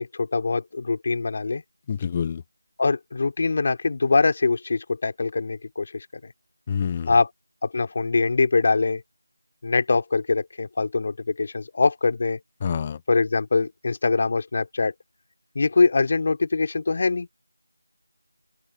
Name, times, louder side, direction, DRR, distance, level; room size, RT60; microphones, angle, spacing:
voice 1, 0.0-1.6 2.8-6.3 7.1-7.3 7.6-9.0 9.6-12.4 13.1-14.9 15.5-17.3, left 3 dB, 35° left, 3.4 m, -23 dB
voice 2, 1.9-2.4 6.7-7.1 12.6-13.0, left 7 dB, 20° left, 0.7 m, -27 dB
open air
figure-of-eight pair, 170°, 0 cm